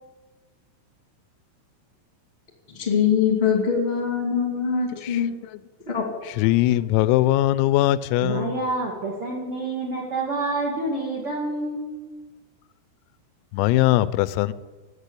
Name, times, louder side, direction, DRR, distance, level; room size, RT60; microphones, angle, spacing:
voice 1, 2.7-5.3 5.8-6.0, left 7 dB, 25° left, 1.3 m, -23 dB
voice 2, 6.4-8.5 13.5-14.5, left 15 dB, 85° left, 3.2 m, -20 dB
voice 3, 8.2-11.9, right 2 dB, 60° right, 1.4 m, -28 dB
13.5 x 9.4 x 8.3 m
omnidirectional pair, 6.0 m